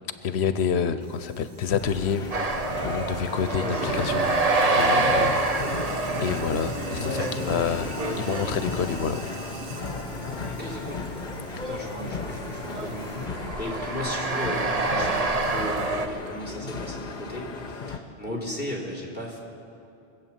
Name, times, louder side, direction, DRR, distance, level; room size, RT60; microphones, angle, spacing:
voice 1, 0.2-2.2 2.8-4.3 4.8-5.4 5.7-9.3 11.6-11.7, left 7 dB, 85° left, 11 dB, 0.9 m, -28 dB
Sink (filling or washing), 1.0-13.4, right 2 dB, 90° right, 1.6 m, -40 dB
sound 1, 1.8-18.0, left 4 dB, 50° left, 1.0 m, -36 dB
sound 2, 2.3-16.1, right 3 dB, 40° right, 0.9 m, -28 dB
voice 2, 3.4-3.9 7.0-7.5 8.0-8.4 10.4-11.1 11.5-13.1 13.6-19.4, left 1 dB, 10° right, -3 dB, 3.0 m, -35 dB
23.5 x 8.5 x 7.2 m, 2.6 s
omnidirectional pair, 1.1 m